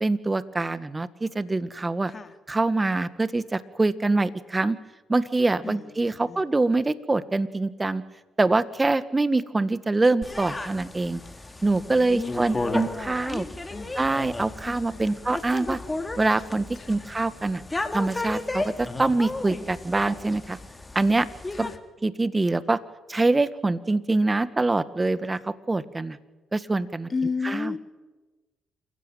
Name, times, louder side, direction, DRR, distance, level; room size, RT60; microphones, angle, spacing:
voice 1, 0.0-2.1 2.5-4.8 5.1-8.0 8.4-11.2 11.6-13.4 14.0-15.8 16.2-17.6 17.9-20.6 20.9-21.3 21.6-21.7 22.0-22.8 23.1-26.2 26.5-27.1 27.4-27.7, right 2 dB, 25° right, 14 dB, 1.6 m, -24 dB
voice 2, 5.6-6.4 11.9-14.0 14.6-15.2 16.7-17.1 21.5-21.8 27.1-27.8, left 4 dB, 40° left, 8 dB, 2.7 m, -34 dB
sound 1, 10.2-21.8, left 2 dB, 20° left, 2.8 m, -34 dB
27.5 x 15.5 x 9.2 m, 1.2 s
supercardioid pair, 55°, 0 cm